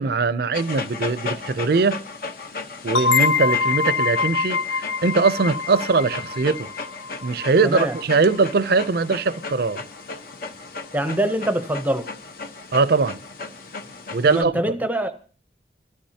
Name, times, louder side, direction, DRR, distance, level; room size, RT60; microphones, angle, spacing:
voice 1, 0.0-2.0 2.8-6.7 7.2-9.8 12.7-13.2 14.1-14.6, right 4 dB, 60° right, 0.5 m, -21 dB
Dog, 0.5-14.4, left 4 dB, 55° left, 0.9 m, -35 dB
sound 1, 2.9-8.4, left 5 dB, 85° left, 0.6 m, -25 dB
voice 2, 7.6-8.0 10.9-12.1 14.3-15.1, right 1 dB, 10° right, 0.7 m, -24 dB
23.5 x 13.5 x 2.8 m
head